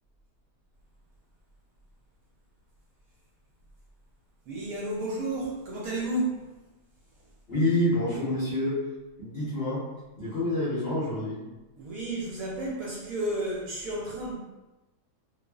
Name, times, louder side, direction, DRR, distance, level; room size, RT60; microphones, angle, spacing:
voice 1, 4.5-6.5 11.8-14.3, right 1 dB, 70° right, -5 dB, 0.9 m, -32 dB
voice 2, 7.5-8.8 9.2-9.9 10.2-11.4, left 1 dB, 55° left, -10 dB, 0.7 m, -27 dB
2.4 x 2.4 x 2.2 m, 1.1 s
omnidirectional pair, 1.8 m